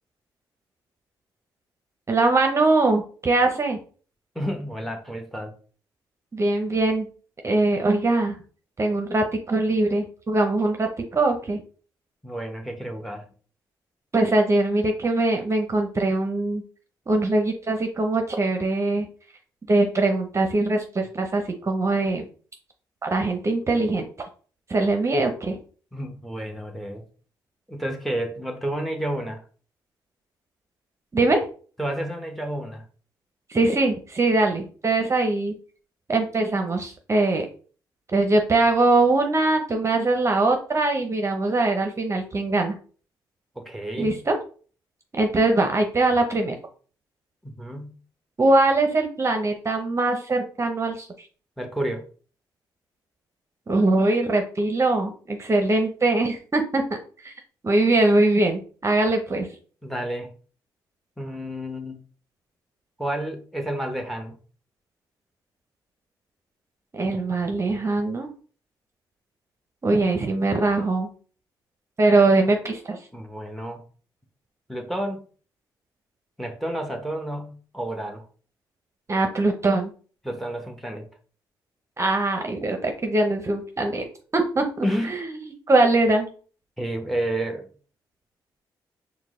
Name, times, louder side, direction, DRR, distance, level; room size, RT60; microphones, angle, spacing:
voice 1, 2.1-3.8 6.3-7.1 7.4-8.4 8.8-11.6 14.1-16.6 17.1-19.1 19.7-22.3 23.0-24.1 24.7-25.6 31.1-31.4 33.5-35.5 36.1-37.5 38.1-42.7 44.0-44.4 45.1-46.5 48.4-51.1 53.7-56.8 57.2-57.3 57.6-59.5 66.9-68.3 69.8-71.1 72.0-73.0 79.1-79.9 82.0-84.1 84.3-85.2 85.7-86.3, right 2 dB, 35° right, 0.7 m, -22 dB
voice 2, 4.3-5.5 12.2-13.2 25.9-27.0 27.7-29.4 31.8-32.8 43.6-44.2 47.4-47.9 51.6-52.1 59.8-60.3 61.2-62.0 63.0-64.3 73.1-73.8 74.7-75.2 76.4-78.2 80.2-81.1 84.8-85.2 86.8-87.7, right 1 dB, ahead, 0.9 m, -30 dB
4.6 x 2.1 x 3.6 m
supercardioid pair, 60°, 9 cm